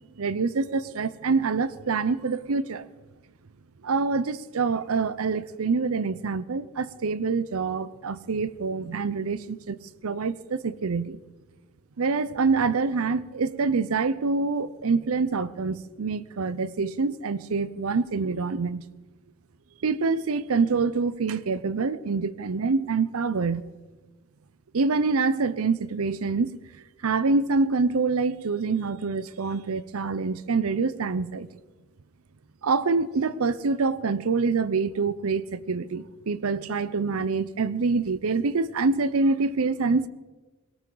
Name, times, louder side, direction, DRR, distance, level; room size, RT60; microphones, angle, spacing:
voice 1, 0.2-2.9 3.8-9.8 10.0-11.2 12.0-18.8 19.8-23.6 24.7-26.6 27.0-31.5 32.6-40.1, right 4 dB, 90° right, 17 dB, 0.6 m, -26 dB
18.0 x 18.0 x 4.0 m, 1.2 s
head